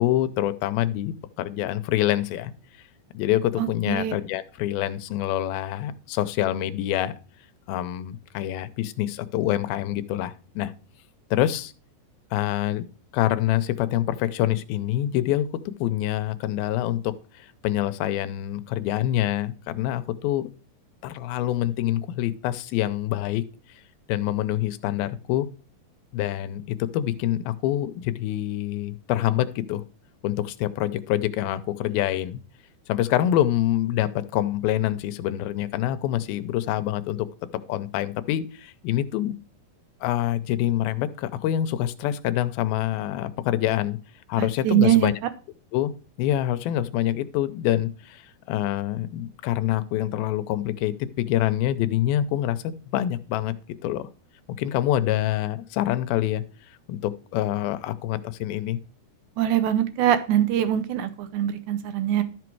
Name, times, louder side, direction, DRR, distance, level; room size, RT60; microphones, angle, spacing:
voice 1, 0.0-2.5 3.1-7.1 7.7-10.7 11.3-11.7 12.3-12.8 13.1-15.5 15.8-17.0 17.4-20.5 21.0-23.4 24.1-25.5 26.1-26.6 26.9-29.8 30.2-32.4 32.9-37.3 37.7-39.3 40.0-44.0 44.3-45.1 45.7-45.9 46.2-48.2 48.5-52.6 52.9-53.5 53.8-54.1 54.6-56.4 56.9-58.8, left 13 dB, 80° left, 12 dB, 2.5 m, -26 dB
voice 2, 3.6-4.1 44.4-45.1 59.4-62.2, right 11 dB, 75° right, 11 dB, 1.9 m, -23 dB
12.5 x 6.1 x 4.6 m, 0.35 s
omnidirectional pair, 4.4 m